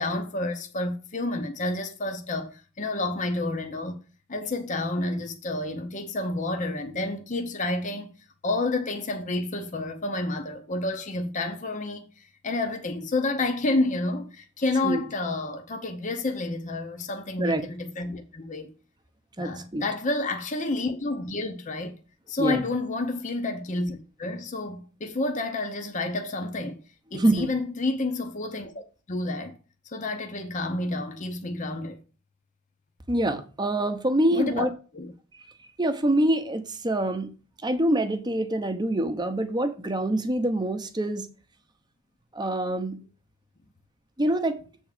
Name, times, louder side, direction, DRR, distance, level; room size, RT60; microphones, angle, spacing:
voice 1, 0.0-4.0 4.3-8.1 8.4-18.7 19.4-21.9 22.3-26.8 27.1-28.8 29.1-29.6 29.9-32.0 34.3-35.1, left 2 dB, 35° left, 0.7 m, -30 dB
voice 2, 19.4-19.8 22.4-22.6 27.1-27.5 33.1-34.7 35.3-35.5 35.8-37.3 37.6-41.3 42.3-43.0 44.2-44.6, right 1 dB, 20° right, 0.8 m, -25 dB
7.7 x 3.6 x 6.6 m
head